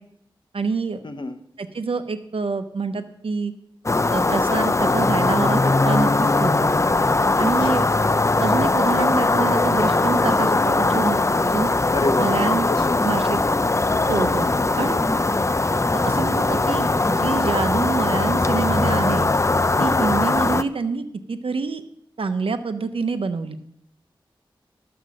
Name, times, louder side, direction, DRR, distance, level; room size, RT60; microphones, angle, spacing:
voice 1, 0.5-1.0 1.6-3.5 4.1-6.7 7.4-7.9 8.4-11.2 11.4-11.7 12.2-12.7 13.0-13.4 14.1-14.5 14.8-15.0 15.9-19.3 19.8-21.8 22.2-23.6, right 4 dB, 80° right, 9 dB, 1.0 m, -26 dB
voice 2, 1.0-1.4 7.6-7.8 11.9-12.4 12.7-13.1 14.4-14.7 15.1-15.4 19.7-20.1, left 2 dB, 60° left, 8 dB, 1.1 m, -29 dB
sound 1, 3.9-20.6, left 3 dB, 35° left, 0.6 m, -20 dB
sound 2, 9.3-17.3, equal, 5° left, 1.6 m, -34 dB
12.5 x 8.0 x 6.4 m, 0.74 s
cardioid pair, 50°, 9 cm